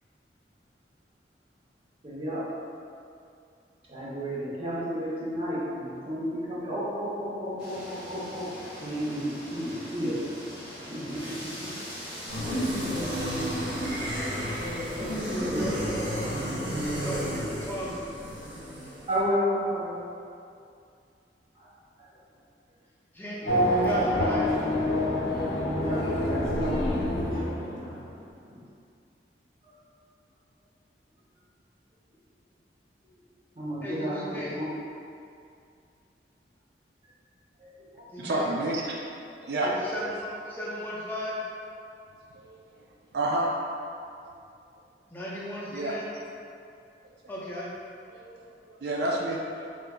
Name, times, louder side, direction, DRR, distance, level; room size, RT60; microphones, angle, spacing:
voice 1, 2.0-2.4 3.9-8.5 8.8-10.2 10.9-11.7 15.3-15.7 19.1-20.0 21.6-21.7 22.0-22.1 23.4-23.9 25.4-25.5 25.8-26.9 27.2-27.5 27.8-28.0 28.4-28.6 29.6-29.8 33.6-34.7 37.6-38.1, equal, 30° right, -7 dB, 0.8 m, -32 dB
sound 1, 7.6-15.8, equal, 5° right, 1.0 m, -42 dB
sound 2, 12.3-19.1, equal, 85° right, 0.9 m, -31 dB
voice 2, 15.0-16.6 17.0-18.0 23.1-24.5 33.8-34.6 38.1-38.5 39.6-41.4 45.1-46.1 47.3-47.7, equal, 10° left, -6 dB, 0.4 m, -36 dB
Race car auto racing / Accelerating revving vroom, 23.5-28.2, left 1 dB, 80° left, 0.5 m, -26 dB
voice 3, 38.2-39.0 39.4-39.7 42.3-42.6 43.1-43.5 45.7-45.9 48.1-48.4 48.8-49.7, right 1 dB, 65° right, -1 dB, 0.3 m, -29 dB
3.7 x 3.5 x 2.2 m, 2.5 s
head